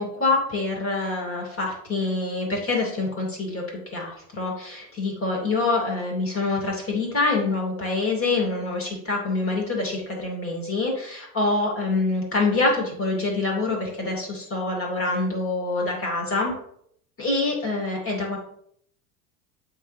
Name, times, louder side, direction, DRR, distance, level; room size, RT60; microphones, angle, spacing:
voice 1, 0.0-16.5 17.2-18.4, left 3 dB, 30° left, -1 dB, 2.5 m, -26 dB
7.8 x 3.7 x 3.2 m, 0.68 s
hypercardioid pair, 80°, 45 cm